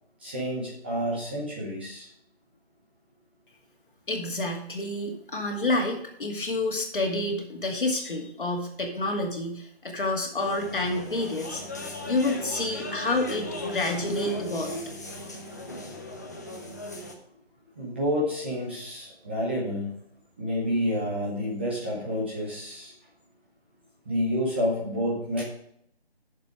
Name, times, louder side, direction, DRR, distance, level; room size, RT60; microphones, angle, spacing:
voice 1, 0.2-2.1 17.8-19.9 20.4-22.9 24.1-25.4, equal, 10° right, -5 dB, 0.9 m, -29 dB
voice 2, 4.1-11.6 12.1-14.8, left 2 dB, 55° left, 2 dB, 2.3 m, -29 dB
sound 1, 10.4-17.1, left 1 dB, 15° left, 0.7 m, -37 dB
8.9 x 6.8 x 4.8 m, 0.72 s
figure-of-eight pair, 160°, 31 cm